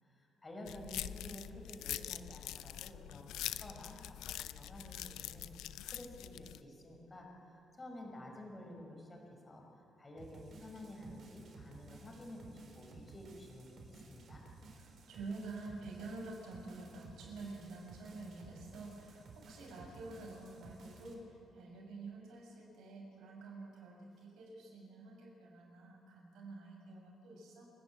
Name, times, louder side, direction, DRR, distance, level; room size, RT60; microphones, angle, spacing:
voice 1, 0.0-5.5 5.9-14.4, left 1 dB, 25° left, 0 dB, 5.3 m, -51 dB
sound 1, 0.7-6.6, left 13 dB, 90° left, 0.6 m, -44 dB
sound 2, 10.2-21.1, right 3 dB, 60° right, 4.0 m, -56 dB
voice 2, 14.7-27.7, right 3 dB, 80° right, -1 dB, 6.4 m, -48 dB
29.5 x 11.5 x 8.6 m, 2.9 s
cardioid pair, 90°, 0 cm